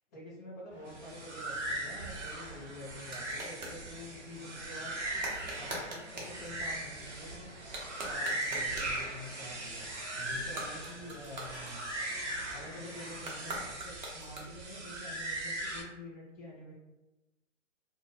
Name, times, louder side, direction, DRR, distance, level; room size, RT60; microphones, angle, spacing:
voice 1, 0.1-4.9 5.5-7.5 8.0-11.8 12.5-16.7, left 1 dB, 15° left, -7 dB, 0.4 m, -47 dB
sound 1, 0.7-13.7, left 1 dB, 5° right, 0.8 m, -54 dB
sound 2, 0.9-15.8, right 1 dB, 70° right, 0.8 m, -39 dB
sound 3, 2.2-3.8 5.2-6.4 7.6-9.0 10.4-12.2 13.2-14.8, right 1 dB, 35° right, 0.6 m, -43 dB
2.4 x 2.0 x 2.6 m, 1.0 s
hypercardioid pair, 140°, 37 cm